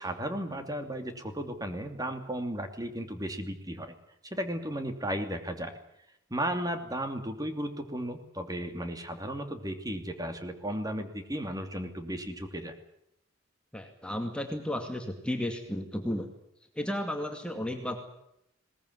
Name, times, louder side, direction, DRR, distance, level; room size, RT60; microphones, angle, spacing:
voice 1, 0.0-3.9 4.2-5.7 6.3-12.7, right 1 dB, 20° right, 7 dB, 2.7 m, -35 dB
voice 2, 13.7-16.3 16.8-18.0, left 1 dB, 5° left, 4 dB, 2.3 m, -33 dB
21.5 x 19.5 x 9.6 m, 0.77 s
head